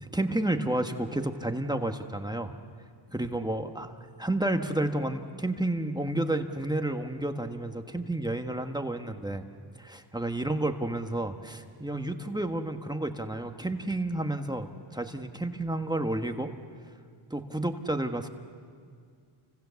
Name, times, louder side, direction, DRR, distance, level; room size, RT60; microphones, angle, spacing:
voice 1, 0.0-2.5 3.1-9.4 9.7-16.5 17.3-18.3, right 1 dB, 10° right, 5 dB, 1.5 m, -31 dB
30.0 x 25.0 x 7.1 m, 2.1 s
cardioid pair, 75°, 49 cm